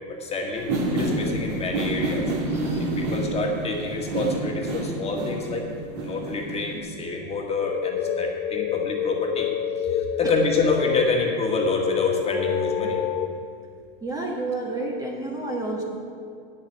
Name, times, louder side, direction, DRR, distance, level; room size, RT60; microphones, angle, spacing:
voice 1, 0.1-0.7 0.9-5.7 6.0-9.5 9.9-13.0, left 3 dB, 20° left, 0 dB, 1.7 m, -27 dB
sound 1, 0.6-6.8, right 2 dB, 60° right, 3.2 m, -28 dB
sound 2, 7.6-13.3, left 9 dB, 35° left, 0.7 m, -27 dB
voice 2, 14.0-15.8, right 2 dB, 10° right, -1 dB, 1.3 m, -29 dB
9.6 x 7.5 x 7.4 m, 2.4 s
supercardioid pair, 125°, 31 cm